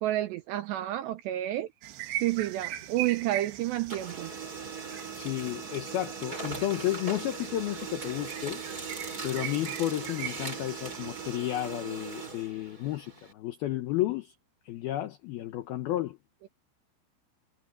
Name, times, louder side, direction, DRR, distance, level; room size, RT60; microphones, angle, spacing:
voice 1, 0.0-1.7 2.2-4.3, right 14 dB, 90° right, 2.5 m, -30 dB
sound 1, 1.8-11.4, right 13 dB, 70° right, 2.9 m, -41 dB
Printer, 2.2-3.5 3.8-13.3, right 4 dB, 20° right, 3.9 m, -40 dB
voice 2, 5.1-8.6 9.2-14.3 14.6-16.2, left 14 dB, 85° left, 2.2 m, -32 dB
omnidirectional pair, 5.8 m